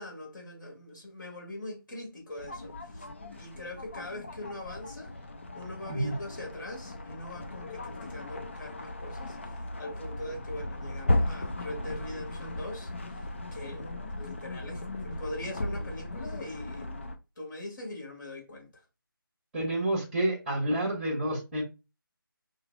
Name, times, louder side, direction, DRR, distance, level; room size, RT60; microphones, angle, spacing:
voice 1, 0.0-3.1 3.4-5.1 5.5-13.2 13.5-13.9 14.1-18.8, left 1 dB, 60° left, 2.5 m, -42 dB
sound 1, 2.4-17.2, left 1 dB, 30° left, 0.5 m, -36 dB
voice 2, 19.5-21.6, right 1 dB, 5° right, 1.0 m, -29 dB
5.6 x 3.0 x 2.5 m
figure-of-eight pair, 170°, 12 cm